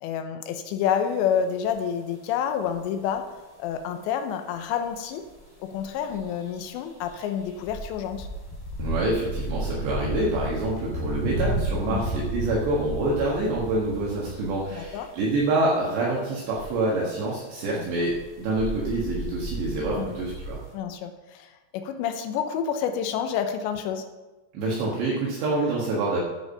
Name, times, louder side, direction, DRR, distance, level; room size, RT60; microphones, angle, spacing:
voice 1, 0.0-3.3 3.6-5.2 5.6-8.3 11.9-12.0 14.7-15.1 17.8-17.9 20.0-20.2 20.7-24.1, left 8 dB, 85° left, 7 dB, 2.5 m, -28 dB
sound 1, 1.7-1.8 2.7-2.8 3.1-3.2 4.8-4.9 5.2-5.3 5.7-5.8 6.1-6.6 7.0-15.0 15.3-15.4 16.5-16.7 17.8-20.5, right 1 dB, 15° left, 3.5 m, -33 dB
voice 2, 8.8-20.6 24.5-26.2, right 2 dB, 65° right, -5 dB, 3.4 m, -26 dB
10.0 x 9.2 x 5.7 m, 1.2 s
omnidirectional pair, 6.0 m